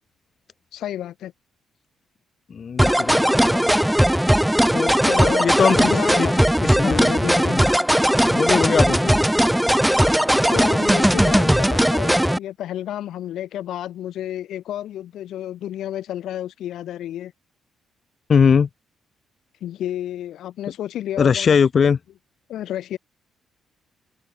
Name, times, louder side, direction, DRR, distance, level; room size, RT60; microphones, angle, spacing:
voice 1, 0.7-1.3 5.0-6.5 6.8-7.6 10.5-17.3 19.6-21.6 22.5-23.0, left 12 dB, 75° left, 1.7 m, -31 dB
voice 2, 2.5-3.6 4.7-5.0 5.4-5.9 6.2-6.3 6.6-7.0 7.5-7.7 8.3-9.3 18.3-18.7 21.2-22.0, left 6 dB, 45° left, 1.7 m, -20 dB
sound 1, 2.8-12.4, equal, 5° right, 0.4 m, -18 dB
open air
cardioid pair, 90°, 0 cm